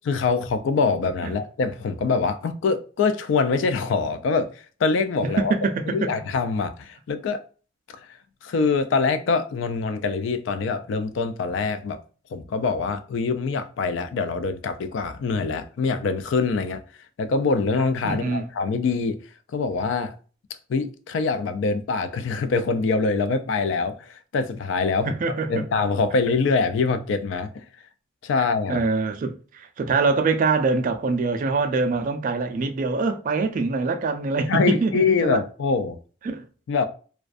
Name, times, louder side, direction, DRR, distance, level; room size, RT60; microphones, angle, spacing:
voice 1, 0.1-5.5 5.9-7.4 8.4-12.0 12.3-16.8 17.2-19.2 19.5-20.1 20.7-25.2 25.5-27.6 28.2-28.8 34.5-36.0 36.7-36.9, left 4 dB, 65° left, 0.3 m, -24 dB
voice 2, 5.4-6.1 18.0-18.5 25.1-25.6 28.4-35.4 36.2-36.4, right 4 dB, 45° right, 0.3 m, -24 dB
2.4 x 2.2 x 2.4 m
head